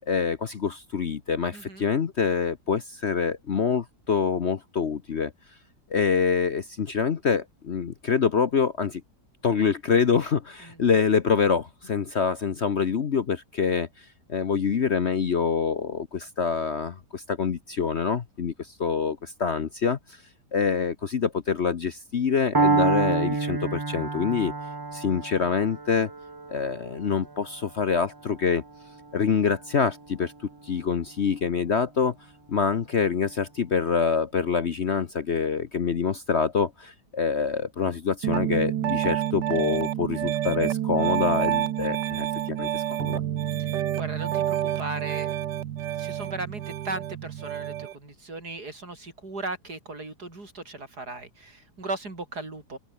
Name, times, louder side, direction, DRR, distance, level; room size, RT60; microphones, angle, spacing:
voice 1, 0.1-5.3 5.9-9.0 9.4-20.2 20.5-24.5 24.9-26.1 26.5-28.6 29.1-30.3 30.6-32.1 32.5-43.2, left 6 dB, 45° left, 1.1 m, -26 dB
voice 2, 1.5-1.9 10.6-10.8 43.6-45.4 46.0-52.8, right 2 dB, 65° right, 5.8 m, -37 dB
Piano, 22.5-30.5, right 3 dB, 25° right, 0.5 m, -29 dB
Piano 2, 38.2-47.9, right 12 dB, 85° right, 1.5 m, -28 dB
open air
omnidirectional pair, 1.8 m